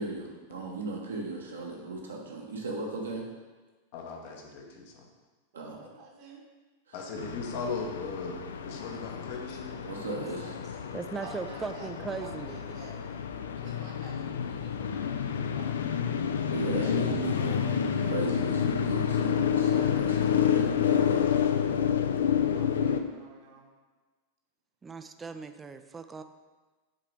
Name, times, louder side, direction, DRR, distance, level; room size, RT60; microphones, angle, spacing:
voice 1, 0.0-3.2 5.5-5.8 6.9-7.0 9.9-10.6 16.5-21.6, right 3 dB, 70° right, -1 dB, 1.1 m, -37 dB
voice 2, 3.9-5.1 6.9-9.7, left 4 dB, 50° left, 2 dB, 0.9 m, -38 dB
voice 3, 5.5-6.5 11.2-13.0 13.5-16.4 22.4-23.7, right 3 dB, 45° right, -1 dB, 1.1 m, -50 dB
sound 1, 7.2-23.0, left 8 dB, 65° left, 0.3 m, -29 dB
voice 4, 10.9-12.6 24.8-26.2, right 5 dB, 15° right, 9 dB, 0.3 m, -38 dB
7.3 x 3.8 x 3.4 m, 1.3 s
figure-of-eight pair, 90°, 0 cm